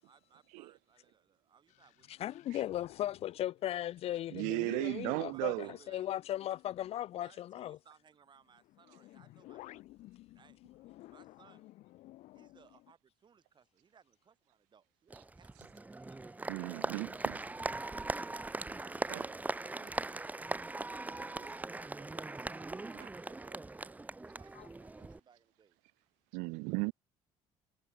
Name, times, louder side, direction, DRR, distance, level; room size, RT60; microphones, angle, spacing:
voice 1, 0.0-2.9 4.9-6.1 7.2-11.7 12.3-15.9 20.8-25.8, right 7 dB, 40° right, 6.6 m, -64 dB
sound 1, 1.7-7.5 8.4-12.9, left 17 dB, 70° left, 1.5 m, -57 dB
voice 2, 2.1-7.8, left 12 dB, 55° left, 0.5 m, -37 dB
voice 3, 4.3-5.7 16.5-17.4 19.1-19.4 19.8-20.2 26.3-26.9, right 32 dB, 90° right, 0.4 m, -36 dB
Applause, 15.1-25.2, right 2 dB, 10° right, 1.1 m, -40 dB
cardioid pair, 105°, 12 cm